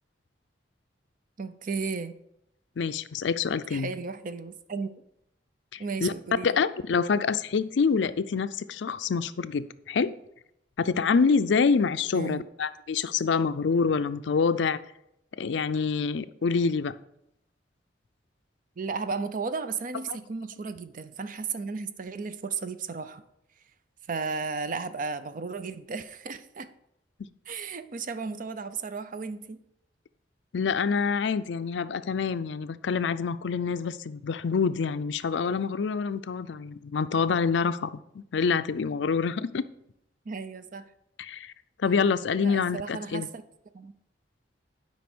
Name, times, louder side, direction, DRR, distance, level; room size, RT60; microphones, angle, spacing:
voice 1, 1.4-2.1 3.7-4.9 5.8-6.6 12.1-12.4 18.8-23.2 24.1-26.7 27.5-29.6 40.3-40.9 42.4-43.4 43.7-43.9, right 4 dB, 45° right, 12 dB, 0.5 m, -34 dB
voice 2, 2.8-3.9 5.7-6.1 6.4-10.2 10.8-14.8 15.4-16.9 20.1-20.2 30.5-39.7 41.2-41.5 41.8-43.3, left 5 dB, 75° left, 13 dB, 0.4 m, -26 dB
8.4 x 5.3 x 6.0 m, 0.80 s
head